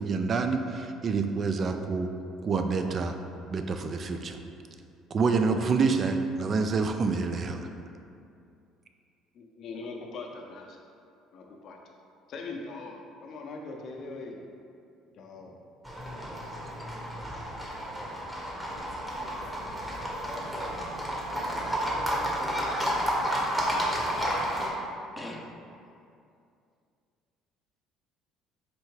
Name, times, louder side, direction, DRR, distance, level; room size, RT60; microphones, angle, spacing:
voice 1, 0.0-2.1 2.4-3.2 3.5-4.4 5.1-7.7, right 4 dB, 45° right, 6 dB, 0.3 m, -27 dB
voice 2, 9.3-10.8 11.3-11.8 12.3-14.4 15.1-15.5, left 3 dB, 60° left, 1 dB, 0.5 m, -41 dB
Livestock farm animals working animals, 15.8-24.7, equal, 10° right, 0.9 m, -31 dB
voice 3, 21.6-22.8 25.2-25.6, left 1 dB, 10° left, -1 dB, 0.5 m, -44 dB
4.4 x 2.7 x 3.1 m, 2.5 s
hypercardioid pair, 70°, 0 cm